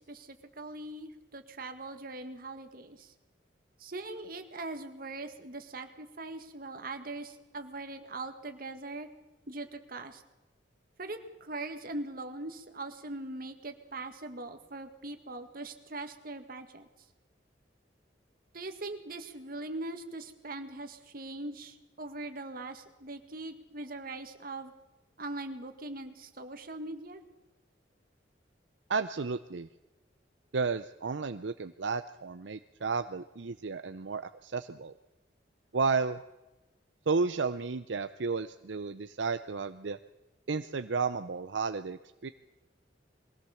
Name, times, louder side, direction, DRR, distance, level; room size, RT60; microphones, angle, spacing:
voice 1, 0.0-3.1 3.8-9.1 9.5-10.2 11.0-16.9 18.5-24.7 25.2-27.2, right 2 dB, 50° right, 7 dB, 1.9 m, -41 dB
voice 2, 28.9-29.7 30.5-34.9 35.7-36.2 37.1-40.0 40.5-42.3, right 4 dB, 75° right, 10 dB, 0.6 m, -32 dB
22.0 x 16.5 x 7.1 m, 1.0 s
head